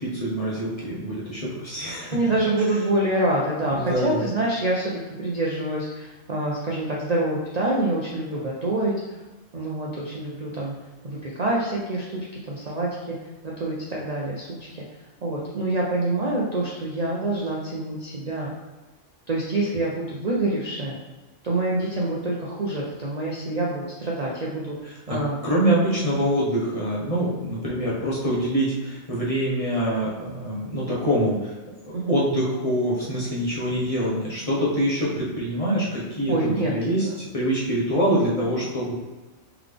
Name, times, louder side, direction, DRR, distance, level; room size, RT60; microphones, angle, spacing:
voice 1, 0.0-2.2 3.7-4.3 25.1-25.2 25.4-31.5 31.8-38.9, equal, 30° left, -6 dB, 1.0 m, -25 dB
voice 2, 2.1-9.2 9.5-10.7 11.0-13.2 13.4-14.7 15.2-18.5 19.3-21.0 21.4-24.8 25.1-25.4 31.9-32.2 36.3-36.7 37.0-37.1 38.4-38.5, right 2 dB, 45° right, -4 dB, 0.6 m, -26 dB
3.9 x 3.4 x 3.4 m, 1.2 s
omnidirectional pair, 1.4 m